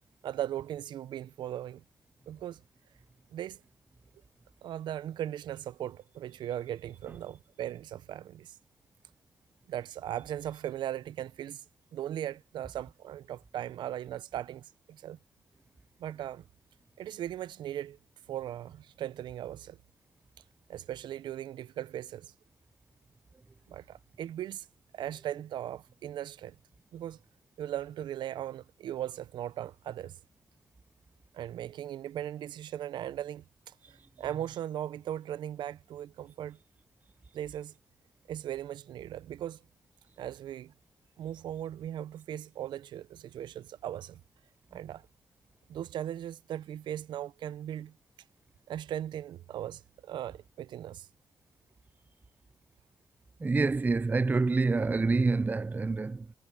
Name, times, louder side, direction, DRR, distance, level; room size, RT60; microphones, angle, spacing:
voice 1, 0.2-1.8 2.3-2.6 3.3-3.6 4.6-8.6 9.7-11.6 11.9-15.2 16.0-16.4 17.0-18.0 18.3-19.8 20.7-22.3 23.7-24.7 24.9-26.6 26.9-27.2 27.6-30.2 31.3-36.6 37.3-37.7 38.3-39.6 40.2-40.7 41.2-44.2 44.7-45.1 45.7-47.9 48.7-51.1, right 11 dB, 80° right, 0.6 m, -38 dB
voice 2, 53.4-56.3, right 3 dB, 25° right, 0.4 m, -27 dB
cardioid pair, 60°, 8 cm